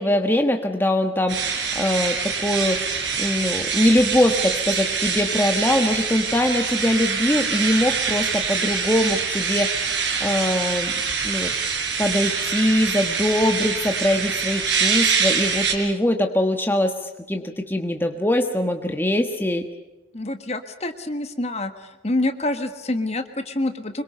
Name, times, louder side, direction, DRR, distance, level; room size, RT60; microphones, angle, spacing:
voice 1, 0.0-2.8 3.2-10.9 11.2-11.5 12.0-17.0 17.3-19.7, left 1 dB, 10° left, 4 dB, 1.3 m, -22 dB
sound 1, 1.3-15.7, right 6 dB, 65° right, 4.4 m, -25 dB
voice 2, 20.1-21.7 22.0-24.0, left 2 dB, 35° left, 8 dB, 1.6 m, -26 dB
25.5 x 23.0 x 6.8 m, 1.0 s
head